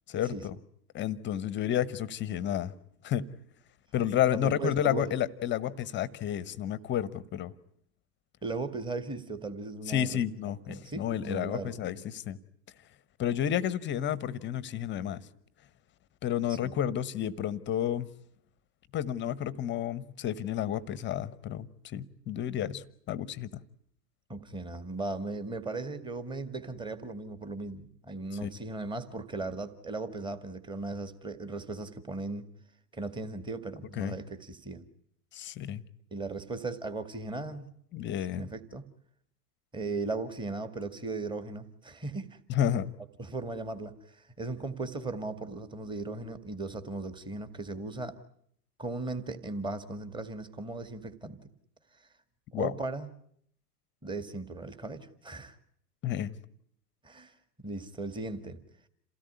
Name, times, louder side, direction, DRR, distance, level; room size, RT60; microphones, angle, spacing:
voice 1, 0.1-0.6 0.9-2.7 3.0-3.2 3.9-7.5 9.9-12.4 13.2-15.2 16.2-18.1 18.9-23.6 28.4-28.5 34.0-34.2 35.3-35.8 37.9-38.5 42.5-42.9 52.5-52.7 56.0-56.3, left 10 dB, 25° left, 19 dB, 1.0 m, -31 dB
voice 2, 4.3-5.2 8.4-10.2 10.7-12.0 16.5-16.7 24.3-32.5 32.9-34.8 36.1-37.7 38.3-38.8 39.7-42.4 43.2-48.2 48.8-51.4 52.6-53.1 54.0-55.6 57.0-57.3 57.6-58.6, right 3 dB, 10° right, 10 dB, 1.9 m, -37 dB
28.5 x 17.5 x 9.7 m, 0.68 s
figure-of-eight pair, 95°, 49 cm